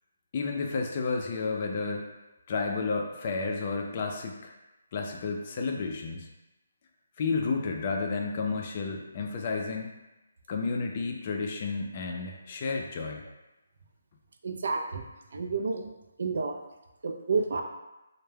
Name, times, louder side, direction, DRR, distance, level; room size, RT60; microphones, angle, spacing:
voice 1, 0.3-2.1 2.5-4.5 4.9-6.3 7.2-9.9 10.5-13.2, left 4 dB, 35° left, 2 dB, 0.3 m, -31 dB
voice 2, 14.4-15.1 15.3-15.9 16.2-16.6 17.0-17.6, right 4 dB, 65° right, 4 dB, 0.3 m, -30 dB
2.2 x 2.0 x 3.2 m, 0.99 s
hypercardioid pair, 160°, 0 cm